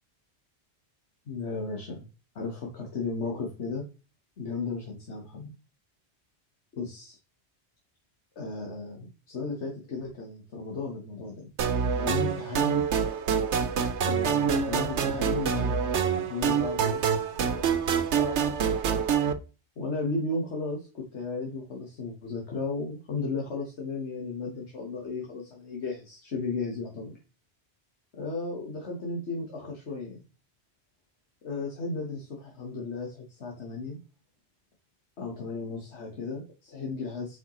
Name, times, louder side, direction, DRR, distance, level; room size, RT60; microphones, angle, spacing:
voice 1, 1.3-2.1 2.3-3.8 4.4-5.5 6.8-7.2 8.3-11.5 11.9-12.8 14.0-17.7 17.9-18.6 19.8-27.2 28.1-30.2 31.4-34.0 35.2-37.4, left 3 dB, 85° left, 0 dB, 1.6 m, -35 dB
sound 1, 11.6-19.3, right 7 dB, 90° right, 1.0 m, -26 dB
7.8 x 5.0 x 3.0 m, 0.32 s
omnidirectional pair, 1.1 m